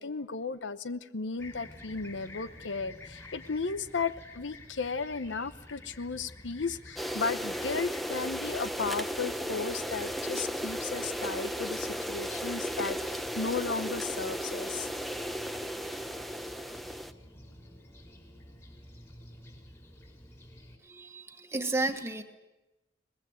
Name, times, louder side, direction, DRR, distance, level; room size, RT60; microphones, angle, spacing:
voice 1, 0.0-14.9, left 4 dB, 90° left, 13 dB, 0.9 m, -35 dB
Fixed-wing aircraft airplane, 1.4-20.8, left 1 dB, 15° left, 5.0 m, -50 dB
sound 1, 7.0-17.1, equal, ahead, 0.8 m, -35 dB
voice 2, 20.8-22.2, right 2 dB, 15° right, 5 dB, 1.6 m, -32 dB
23.5 x 20.0 x 8.1 m, 1.0 s
head